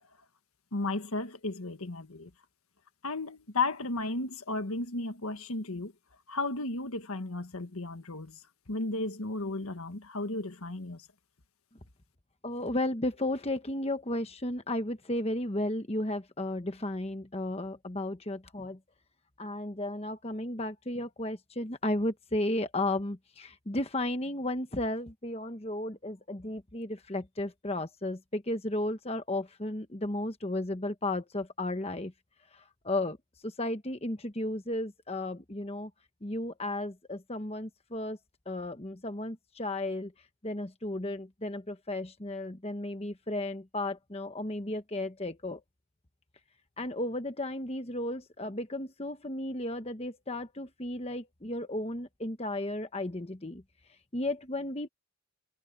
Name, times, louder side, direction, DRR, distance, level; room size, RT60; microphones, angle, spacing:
voice 1, 0.7-2.3 3.0-5.9 6.3-8.4 8.7-11.1, left 2 dB, 75° left, 1.6 m, -34 dB
voice 2, 12.4-18.8 19.4-32.1 32.5-33.2 33.4-35.9 36.2-38.2 38.5-40.1 40.4-45.6 46.8-53.6 54.1-54.9, left 1 dB, 25° left, 1.1 m, -34 dB
head